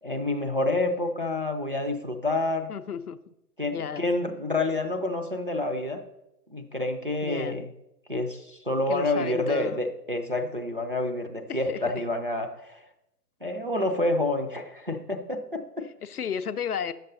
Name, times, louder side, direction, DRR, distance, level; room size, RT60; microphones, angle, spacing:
voice 1, 0.0-2.7 3.6-6.0 6.5-7.7 8.1-12.8 13.4-15.9, left 2 dB, 35° right, 3 dB, 0.4 m, -28 dB
voice 2, 2.7-3.2 3.7-4.1 7.2-7.6 8.9-9.8 11.5-11.8 16.0-16.9, left 7 dB, 65° left, 13 dB, 0.5 m, -33 dB
9.1 x 6.6 x 3.8 m, 0.88 s
figure-of-eight pair, 135°, 49 cm